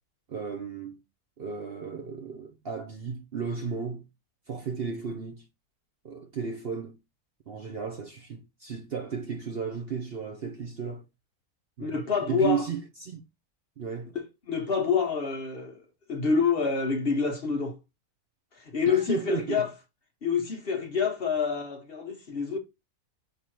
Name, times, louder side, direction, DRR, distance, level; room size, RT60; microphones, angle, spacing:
voice 1, 0.3-1.0 1.4-4.0 4.5-5.4 6.0-7.0 7.5-11.0 11.8-12.0 12.3-13.2 13.8-14.1 18.9-19.7, right 6 dB, 50° right, 0.8 m, -34 dB
voice 2, 11.8-12.7 14.1-17.8 18.5-19.7 20.2-22.6, left 5 dB, 45° left, 1.0 m, -27 dB
5.8 x 3.6 x 4.5 m
omnidirectional pair, 1.6 m